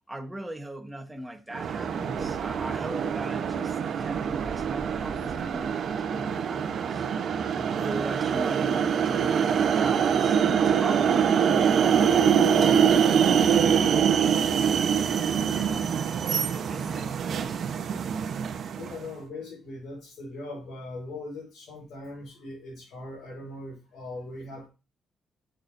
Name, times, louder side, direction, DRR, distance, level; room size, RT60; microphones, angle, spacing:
voice 1, 0.1-7.1 7.8-14.1 15.2-16.0 16.5-17.7, right 1 dB, 10° right, 1.3 m, -40 dB
sound 1, 1.5-19.0, right 7 dB, 60° right, 0.9 m, -24 dB
voice 2, 7.5-7.9 14.2-14.4 18.7-24.7, left 2 dB, 75° left, 4.3 m, -40 dB
7.7 x 6.5 x 2.7 m
cardioid pair, 90°, 0 cm